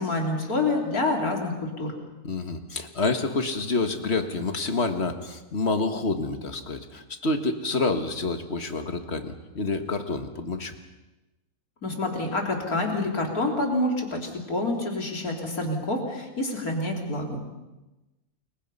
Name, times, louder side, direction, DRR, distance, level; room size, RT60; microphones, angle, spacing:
voice 1, 0.0-1.9 11.8-17.6, left 2 dB, 85° left, 1 dB, 4.1 m, -27 dB
voice 2, 2.2-10.8, left 3 dB, 45° left, 7 dB, 1.9 m, -28 dB
29.0 x 22.5 x 5.6 m, 1.1 s
omnidirectional pair, 1.5 m